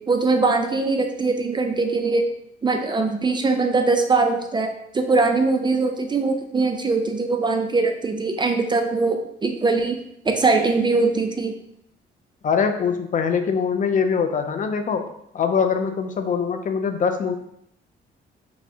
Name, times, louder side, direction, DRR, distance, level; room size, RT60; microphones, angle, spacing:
voice 1, 0.1-2.3 2.6-10.0 10.3-11.5, right 3 dB, 25° right, 5 dB, 0.4 m, -21 dB
voice 2, 12.4-15.0 15.3-17.4, left 6 dB, 40° left, 7 dB, 0.4 m, -23 dB
5.4 x 2.1 x 2.7 m, 0.75 s
cardioid pair, 90°, 20 cm